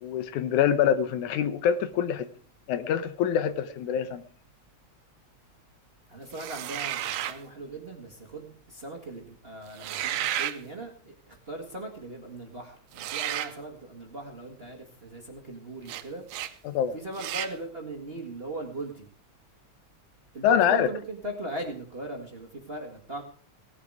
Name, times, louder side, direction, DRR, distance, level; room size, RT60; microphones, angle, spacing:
voice 1, 0.0-2.3 2.7-4.2 16.6-17.0 20.4-20.9, left 9 dB, 85° left, 12 dB, 2.4 m, -25 dB
voice 2, 6.1-16.2 16.5-16.6 16.9-19.1 20.3-23.2, right 2 dB, 25° right, 2 dB, 1.4 m, -39 dB
sound 1, 6.3-7.4 9.7-10.6 12.9-13.5 15.9-16.0 16.3-16.5 17.1-17.5, right 12 dB, 80° right, 2.1 m, -32 dB
17.5 x 11.0 x 4.8 m, 0.44 s
omnidirectional pair, 3.4 m